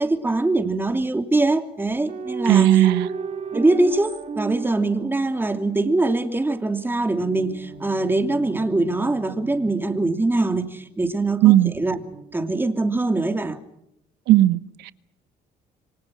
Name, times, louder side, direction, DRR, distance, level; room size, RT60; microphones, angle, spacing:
voice 1, 0.0-2.7 3.5-12.0 12.3-13.6, right 2 dB, 10° right, 7 dB, 2.9 m, -23 dB
sound 1, 2.1-5.8 7.2-10.9 11.7-13.0, right 5 dB, 45° right, 2.2 m, -34 dB
voice 2, 2.5-3.1 11.4-11.7 14.3-14.9, right 14 dB, 90° right, 15 dB, 1.1 m, -16 dB
28.5 x 24.0 x 6.2 m, 0.78 s
cardioid pair, 110°, 17 cm